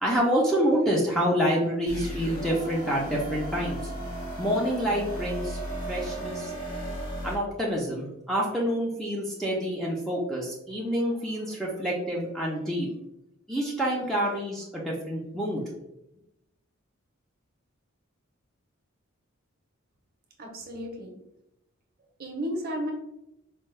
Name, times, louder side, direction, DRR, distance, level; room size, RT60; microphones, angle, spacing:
voice 1, 0.0-3.9 4.4-5.6 5.9-6.5 7.2-12.9 13.5-15.6, equal, ahead, -3 dB, 0.4 m, -27 dB
sound 1, 1.9-7.3, right 1 dB, 85° left, 1.3 m, -35 dB
voice 2, 20.4-21.1 22.2-22.9, equal, 45° right, 1 dB, 0.7 m, -33 dB
4.4 x 2.2 x 3.1 m, 0.87 s
head